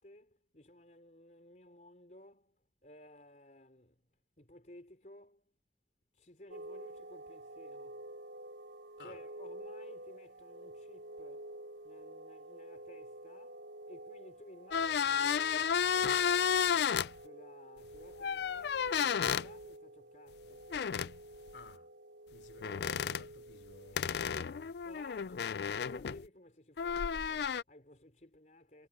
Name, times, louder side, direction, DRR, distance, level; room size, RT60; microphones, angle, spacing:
voice 1, 0.0-4.1 4.4-5.5 6.1-8.1 8.9-11.6 11.8-20.7 23.9-28.9, left 1 dB, 45° left, 4.1 m, -57 dB
sound 1, 6.5-23.9, right 1 dB, 85° right, 3.6 m, -50 dB
sound 2, 14.7-17.1 18.2-19.5 20.7-21.1 22.6-23.2 24.0-26.2 26.8-27.6, left 7 dB, 70° left, 0.4 m, -32 dB
voice 2, 21.5-21.9 22.3-24.7 25.3-25.4, left 3 dB, 85° left, 3.4 m, -55 dB
head